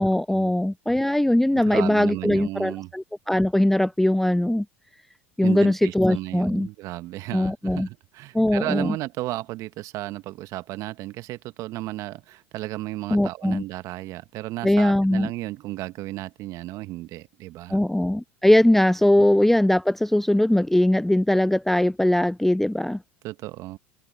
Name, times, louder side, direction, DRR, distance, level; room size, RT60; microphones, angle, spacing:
voice 1, 0.0-4.7 5.4-6.7 7.3-7.9 8.3-8.9 13.1-13.6 14.6-15.3 17.7-23.0, left 1 dB, 5° left, 0.4 m, -20 dB
voice 2, 1.5-2.9 5.4-17.8 19.2-19.3 23.2-23.8, right 17 dB, 50° right, 1.8 m, -34 dB
open air
hypercardioid pair, 80°, 7 cm